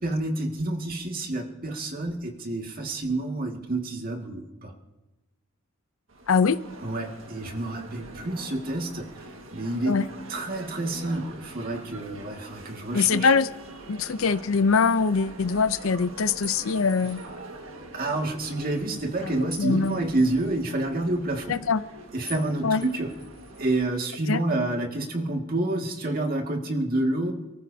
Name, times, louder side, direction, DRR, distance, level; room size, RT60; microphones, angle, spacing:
voice 1, 0.0-4.7 6.8-10.0 10.3-13.3 17.9-21.6 22.1-23.1 23.6-27.3, right 2 dB, 45° right, 2.1 m, -28 dB
sound 1, 6.1-23.9, right 1 dB, 75° right, 1.8 m, -44 dB
voice 2, 6.3-6.6 9.9-10.1 12.9-13.5 13.9-17.2 19.2-19.3 19.6-20.0 21.5-21.8 22.6-22.8 24.3-24.4, left 5 dB, 85° left, 0.6 m, -23 dB
sound 2, 16.4-17.4 19.5-20.5 22.3-22.5 22.8-23.8, left 2 dB, ahead, 4.8 m, -44 dB
28.0 x 14.0 x 2.8 m
head